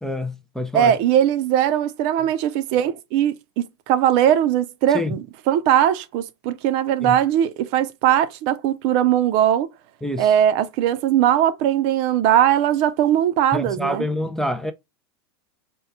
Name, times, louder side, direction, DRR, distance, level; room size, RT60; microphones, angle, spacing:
voice 1, 0.0-1.0 4.9-5.2 7.0-7.2 10.0-10.3 13.5-14.7, left 1 dB, 5° left, 0.4 m, -27 dB
voice 2, 0.7-9.7 10.2-14.0, right 10 dB, 50° right, 0.6 m, -20 dB
4.5 x 2.2 x 3.5 m
hypercardioid pair, 105°, 14 cm